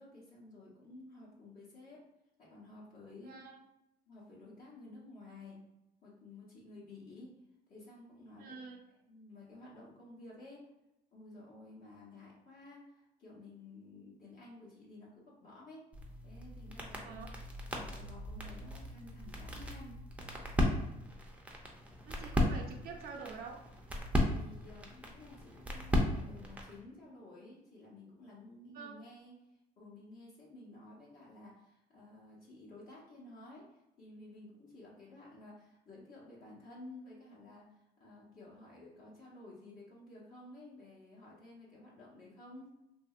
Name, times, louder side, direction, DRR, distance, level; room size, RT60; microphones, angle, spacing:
voice 1, 0.0-2.0 2.4-3.4 4.1-5.6 6.0-7.4 7.7-10.7 11.1-15.8 16.2-17.2 17.6-20.0 24.3-42.8, left 2 dB, 60° left, -6 dB, 1.0 m, -53 dB
voice 2, 3.2-3.6 8.4-8.8 17.0-17.3 22.1-23.6 28.7-29.0, right 5 dB, 65° right, 3 dB, 0.5 m, -47 dB
sound 1, 15.9-26.8, left 1 dB, 10° right, 0.5 m, -36 dB
2.8 x 2.6 x 2.4 m, 0.87 s
cardioid pair, 110°, 17 cm